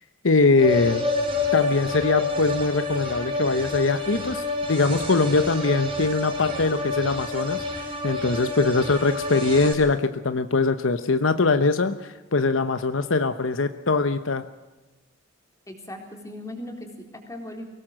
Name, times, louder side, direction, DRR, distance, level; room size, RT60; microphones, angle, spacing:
voice 1, 0.2-1.1 1.5-7.6 8.0-14.5, left 3 dB, 70° left, 11 dB, 0.9 m, -22 dB
sound 1, 0.6-9.7, left 3 dB, 25° right, 6.1 m, -28 dB
voice 2, 15.7-17.6, left 1 dB, 15° left, 3 dB, 4.0 m, -38 dB
23.5 x 18.0 x 7.6 m, 1.1 s
head